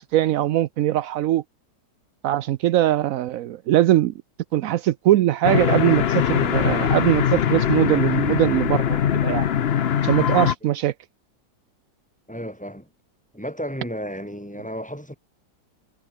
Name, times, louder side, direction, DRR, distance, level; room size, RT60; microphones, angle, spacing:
voice 1, 0.0-1.4 2.2-4.1 4.5-9.5 10.0-10.9, right 13 dB, 80° right, 0.7 m, -21 dB
sound 1, 5.4-10.5, left 9 dB, 60° left, 0.6 m, -21 dB
voice 2, 12.3-12.9 13.3-15.1, equal, 5° left, 4.8 m, -33 dB
omnidirectional pair, 2.0 m